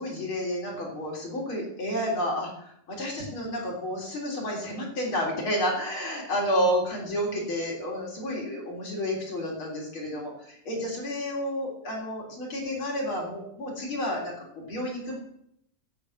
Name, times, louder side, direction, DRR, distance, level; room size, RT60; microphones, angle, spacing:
voice 1, 0.0-15.2, equal, 35° left, -2 dB, 4.1 m, -30 dB
11.5 x 8.2 x 7.8 m, 0.71 s
omnidirectional pair, 4.0 m